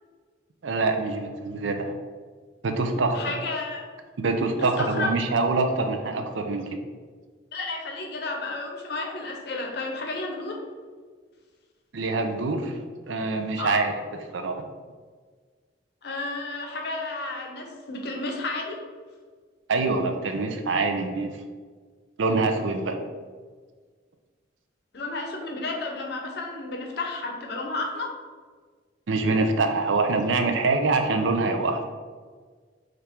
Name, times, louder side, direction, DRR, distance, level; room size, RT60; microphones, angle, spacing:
voice 1, 0.6-1.9 2.6-3.2 4.2-6.8 11.9-12.8 13.1-13.9 14.3-14.6 19.7-21.3 22.2-23.0 29.1-31.8, right 3 dB, 80° right, 5 dB, 0.5 m, -25 dB
voice 2, 3.1-3.8 4.6-5.1 7.5-10.6 13.6-13.8 16.0-18.8 24.9-28.1, left 2 dB, 60° left, 1 dB, 0.6 m, -32 dB
3.4 x 2.5 x 4.3 m, 1.5 s
head